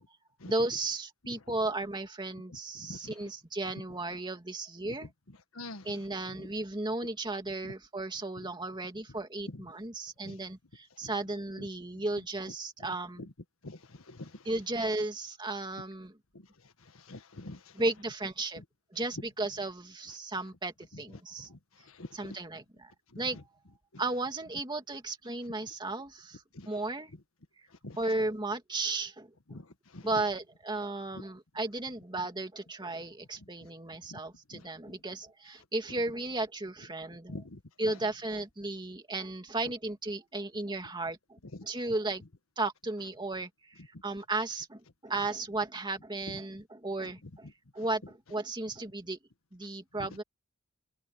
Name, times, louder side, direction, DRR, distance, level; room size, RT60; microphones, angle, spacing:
voice 1, 0.5-5.1 5.8-13.3 14.4-16.2 17.7-18.6 18.9-21.5 22.1-22.9 23.2-23.4 24.0-27.1 28.0-29.6 30.0-37.4 37.8-42.2 42.6-49.2 49.5-50.2, right 2 dB, 20° right, 2.3 m, -35 dB
voice 2, 2.8-3.1 4.8-4.9 5.5-5.9 6.4-6.5 7.6-7.7 9.5-9.6 10.2-10.4 11.0-11.1 11.6-11.7 13.6-14.4 16.9-17.7 21.4-21.6 21.9-22.1 23.1-23.2 26.5-26.7 27.8-28.0 29.5-29.7 29.9-30.1 34.1-34.2 34.5-34.7 37.3-37.6 37.9-38.0, left 2 dB, 85° left, 1.6 m, -45 dB
open air
head